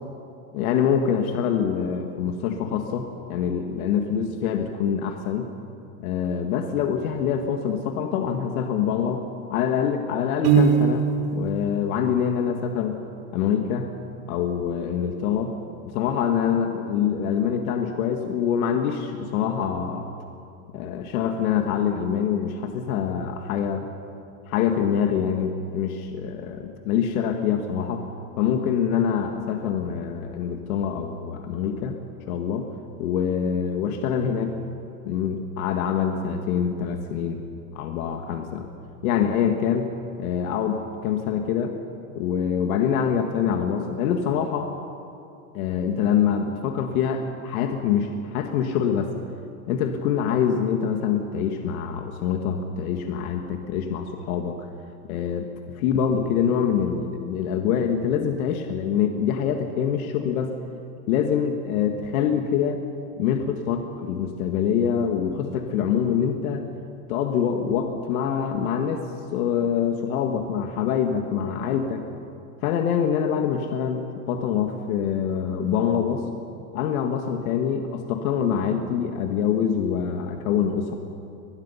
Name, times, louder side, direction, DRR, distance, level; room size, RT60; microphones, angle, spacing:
voice 1, 0.5-5.5 6.0-9.2 9.5-11.0 11.3-13.0 13.3-13.9 14.3-15.6 15.9-20.1 20.7-23.9 24.5-28.1 28.4-32.0 32.3-32.7 33.0-34.6 35.0-37.5 37.7-38.7 39.0-39.9 40.2-41.7 42.2-44.7 45.5-49.1 49.7-54.6 55.1-55.5 55.7-60.6 61.1-62.8 63.2-66.7 67.1-72.1 72.6-76.2 76.7-81.0, left 8 dB, 75° left, 5 dB, 1.9 m, -25 dB
Piano, 10.4-11.4, right 6 dB, 70° right, 4.2 m, -19 dB
23.5 x 21.0 x 5.7 m, 2.8 s
supercardioid pair, 155°, 43 cm